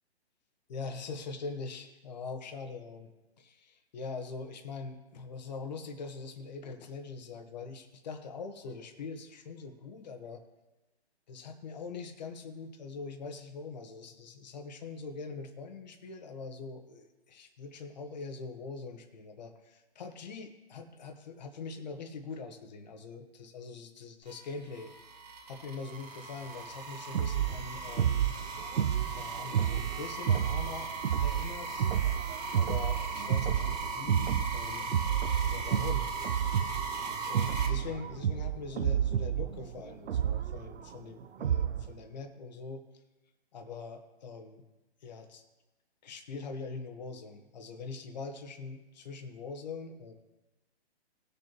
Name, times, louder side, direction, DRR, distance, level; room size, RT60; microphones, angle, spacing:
voice 1, 0.7-3.1 3.4-10.4 11.3-24.9 25.5-28.3 29.1-30.9 31.2-31.9 32.5-34.9 35.4-36.1 36.9-42.8 43.5-44.6 45.0-45.4 46.0-50.1, left 4 dB, 40° left, 5 dB, 1.4 m, -43 dB
sound 1, 24.3-37.7, right 3 dB, 40° right, 1.9 m, -39 dB
sound 2, 27.1-41.9, right 9 dB, 85° right, 0.6 m, -31 dB
19.0 x 6.7 x 3.0 m, 1.1 s
hypercardioid pair, 165°, 32 cm